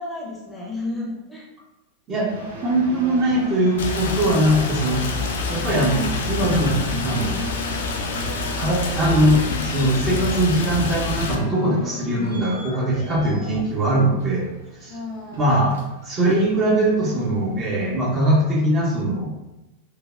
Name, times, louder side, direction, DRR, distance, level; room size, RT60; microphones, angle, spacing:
voice 1, 0.0-1.5 14.9-15.8, left 2 dB, 5° left, -4 dB, 0.7 m, -33 dB
sound 1, 2.3-18.3, right 1 dB, 65° right, 0.7 m, -37 dB
voice 2, 2.6-5.0 5.5-6.8 7.0-7.4 8.6-14.5 14.8-14.9 15.4-15.7 16.0-19.3, right 1 dB, 25° right, -4 dB, 0.7 m, -21 dB
Rain, 3.8-11.3, left 4 dB, 60° left, 0.3 m, -27 dB
sound 2, 8.6-13.6, equal, 85° right, 1.0 m, -36 dB
3.3 x 2.2 x 2.3 m, 1.0 s
figure-of-eight pair, 90°, 0 cm